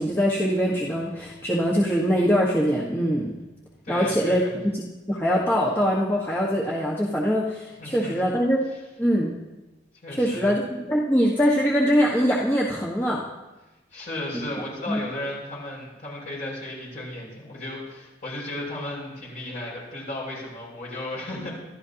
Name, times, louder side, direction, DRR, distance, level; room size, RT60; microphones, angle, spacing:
voice 1, 0.0-3.3 3.9-8.6 9.0-9.3 10.2-13.3 14.9-15.0, equal, 15° left, -5 dB, 1.4 m, -23 dB
voice 2, 3.8-4.5 7.8-8.2 10.0-10.6 13.9-21.5, left 1 dB, 45° left, -4 dB, 6.3 m, -34 dB
26.0 x 12.0 x 2.9 m, 1.1 s
head